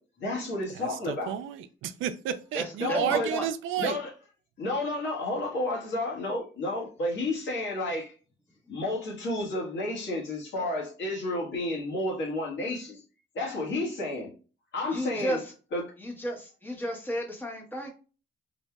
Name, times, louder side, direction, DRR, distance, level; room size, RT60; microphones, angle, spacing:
voice 1, 0.2-1.4 2.8-3.3 3.8-4.1 4.6-8.1 8.7-13.0 13.3-14.3 14.7-15.4 15.7-15.9, left 2 dB, 65° left, 1.5 m, -31 dB
voice 2, 0.8-4.0, right 10 dB, 80° right, 0.4 m, -31 dB
voice 3, 2.5-3.5 14.9-15.4 16.0-17.9, equal, 10° left, 1.2 m, -33 dB
4.2 x 2.6 x 2.2 m
cardioid pair, 90°, 20 cm